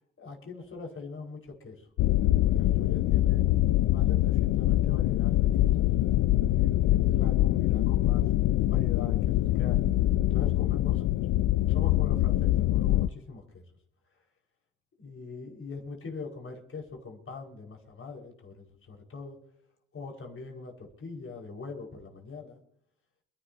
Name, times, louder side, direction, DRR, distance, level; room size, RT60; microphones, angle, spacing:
voice 1, 0.2-1.9 2.4-5.9 6.5-8.2 8.6-9.8 10.3-11.1 11.3-13.6 15.0-19.4 19.9-22.6, left 4 dB, 45° left, 0 dB, 5.4 m, -43 dB
sound 1, 2.0-13.1, left 15 dB, 80° left, 0.5 m, -24 dB
29.0 x 11.5 x 2.9 m, 0.68 s
cardioid pair, 90°, 30 cm